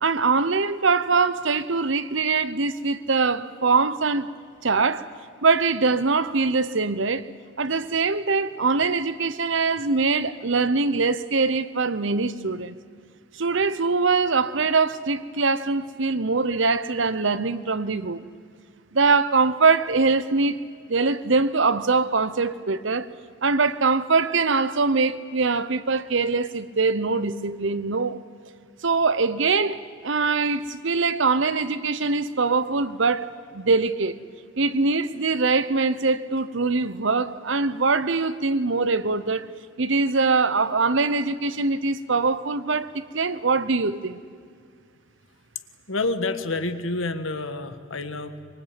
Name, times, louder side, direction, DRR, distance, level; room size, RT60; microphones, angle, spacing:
voice 1, 0.0-4.3 4.6-5.1 5.4-7.3 7.6-12.7 13.4-18.2 18.9-20.6 20.9-23.1 23.4-28.2 28.8-34.2 34.6-39.5 39.8-44.2, right 4 dB, 65° right, 0.9 m, -23 dB
voice 2, 45.9-48.4, left 3 dB, 75° left, 1.6 m, -28 dB
24.5 x 24.0 x 9.0 m
head